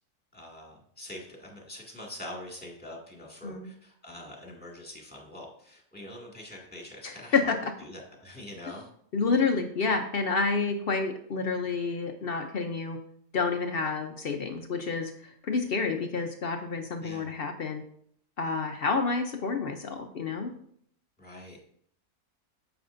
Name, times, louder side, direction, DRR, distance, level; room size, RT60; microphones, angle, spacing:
voice 1, 0.3-7.5 7.8-8.8 17.0-17.4 21.2-21.6, left 1 dB, 5° left, -2 dB, 1.9 m, -44 dB
voice 2, 7.0-7.7 9.1-13.0 13.3-17.8 18.4-20.5, left 4 dB, 60° left, 5 dB, 0.6 m, -29 dB
9.3 x 7.1 x 2.6 m, 0.65 s
omnidirectional pair, 1.6 m